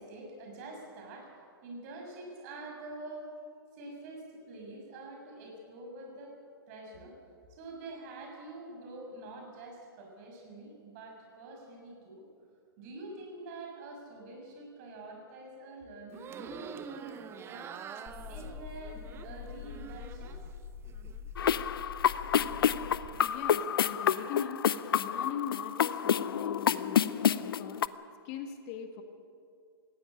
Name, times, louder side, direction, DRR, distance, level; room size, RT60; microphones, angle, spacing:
voice 1, 0.0-3.3 3.7-7.1 7.5-12.2 12.8-17.7 18.3-20.3, right 2 dB, 40° right, 2 dB, 6.4 m, -46 dB
sound 1, 16.1-20.5 20.9-21.6, right 7 dB, 20° right, 0.9 m, -46 dB
sound 2, 18.1-23.1, left 7 dB, 20° left, 3.7 m, -44 dB
sound 3, 21.4-27.9, left 9 dB, 65° left, 0.6 m, -28 dB
voice 2, 23.2-24.7 24.9-27.1 27.4-27.8 28.2-29.0, left 8 dB, 35° left, 7 dB, 1.6 m, -40 dB
18.5 x 16.0 x 8.8 m, 2.4 s
figure-of-eight pair, 120°, 13 cm